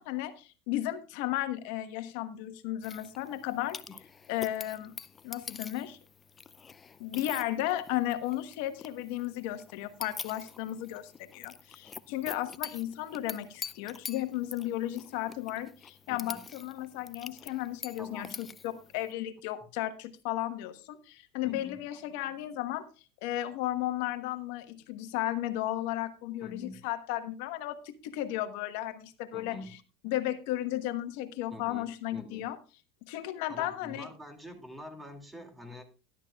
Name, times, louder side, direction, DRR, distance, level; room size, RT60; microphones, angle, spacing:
voice 1, 0.0-3.8 4.3-4.9 5.2-6.0 7.0-22.9 23.2-29.6 30.0-32.6 33.0-34.1, left 14 dB, 70° left, 10 dB, 1.2 m, -34 dB
sound 1, 2.8-19.1, left 5 dB, 25° left, 0.4 m, -46 dB
voice 2, 16.1-16.4 18.0-18.4 21.4-21.8 26.4-26.8 29.3-29.7 31.5-32.5 33.5-35.8, left 1 dB, 10° right, 5 dB, 2.5 m, -46 dB
13.0 x 11.5 x 2.4 m, 0.34 s
hypercardioid pair, 100°, 0 cm